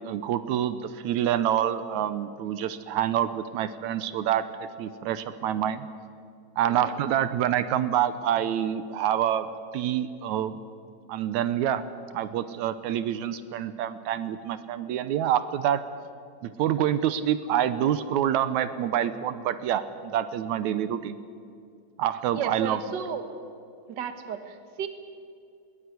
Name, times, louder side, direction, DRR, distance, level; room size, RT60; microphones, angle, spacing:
voice 1, 0.0-5.9 6.6-9.5 9.7-10.6 11.1-11.8 12.1-15.8 16.4-21.2 22.0-22.8, right 10 dB, 80° right, 13 dB, 2.1 m, -27 dB
voice 2, 22.3-23.2 23.9-24.9, right 7 dB, 45° right, 9 dB, 1.8 m, -33 dB
21.0 x 19.0 x 9.6 m, 2.4 s
omnidirectional pair, 3.3 m